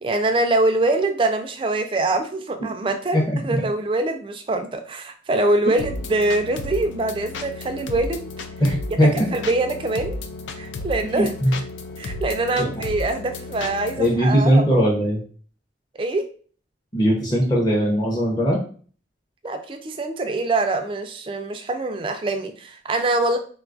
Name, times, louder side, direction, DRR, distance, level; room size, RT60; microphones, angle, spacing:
voice 1, 0.0-8.3 9.3-10.2 10.5-11.3 12.0-14.7 16.0-16.3 19.4-23.4, right 2 dB, 30° right, 6 dB, 0.3 m, -24 dB
voice 2, 3.1-3.6 8.6-9.1 11.1-11.5 12.6-12.7 14.0-15.2 16.9-18.6, equal, 20° left, -4 dB, 0.6 m, -19 dB
sound 1, 5.8-14.1, left 2 dB, 85° left, 0.4 m, -33 dB
3.8 x 2.3 x 2.4 m, 0.43 s
head